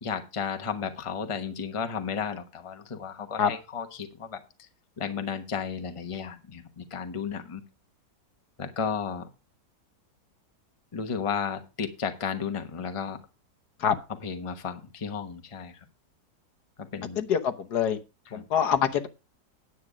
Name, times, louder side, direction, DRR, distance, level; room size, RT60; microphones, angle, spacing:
voice 1, 0.0-4.4 5.0-7.6 8.6-9.3 10.9-13.2 14.2-15.8 16.8-17.2 18.3-18.4, left 6 dB, 20° left, 7 dB, 1.0 m, -33 dB
voice 2, 17.1-18.0 18.3-19.1, left 8 dB, 65° left, 8 dB, 1.5 m, -25 dB
9.8 x 8.3 x 5.0 m, 0.29 s
omnidirectional pair, 1.9 m